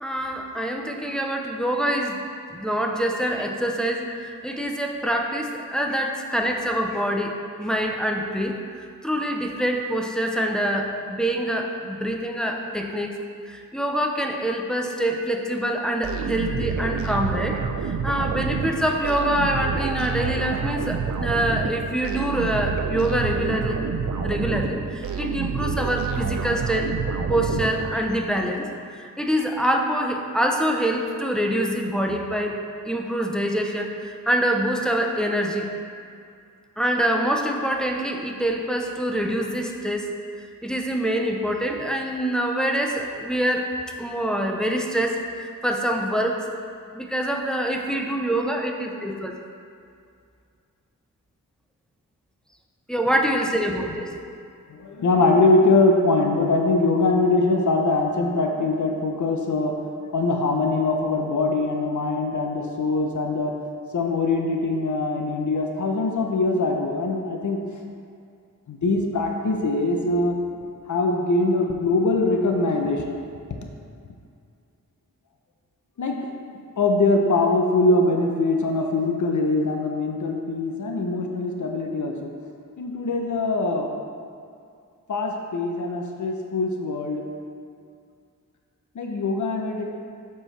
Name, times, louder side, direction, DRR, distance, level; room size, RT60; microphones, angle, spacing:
voice 1, 0.0-2.2 2.5-8.6 9.0-17.6 18.0-23.8 24.2-26.9 27.3-28.7 29.0-32.6 32.9-35.7 36.8-40.1 40.6-43.7 44.0-45.2 45.6-46.4 46.9-49.3 52.9-54.2, right 1 dB, ahead, 1 dB, 0.4 m, -25 dB
sound 1, 16.0-28.2, right 5 dB, 60° right, 0.5 m, -28 dB
voice 2, 54.7-63.5 63.9-67.6 68.7-70.3 70.9-73.2 76.0-76.2 76.8-82.3 82.8-83.9 85.1-87.2 88.9-89.8, left 2 dB, 60° left, 2 dB, 0.7 m, -22 dB
7.6 x 4.6 x 3.2 m, 2.4 s
wide cardioid pair, 115°, 33 cm